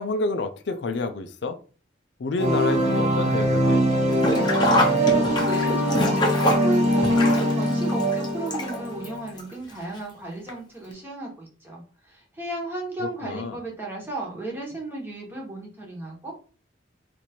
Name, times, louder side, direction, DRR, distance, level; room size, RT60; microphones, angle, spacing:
voice 1, 0.0-1.6 2.2-3.8 13.2-13.6, left 3 dB, 65° left, 0.4 m, -28 dB
sound 1, 2.4-9.3, equal, 40° right, 0.9 m, -22 dB
Sink (filling or washing), 4.1-9.1 9.4-9.5 10.5-10.6 10.9-11.0, left 1 dB, 25° left, 0.7 m, -25 dB
voice 2, 4.8-16.3, right 2 dB, 10° right, 1.1 m, -34 dB
3.0 x 2.6 x 4.1 m
head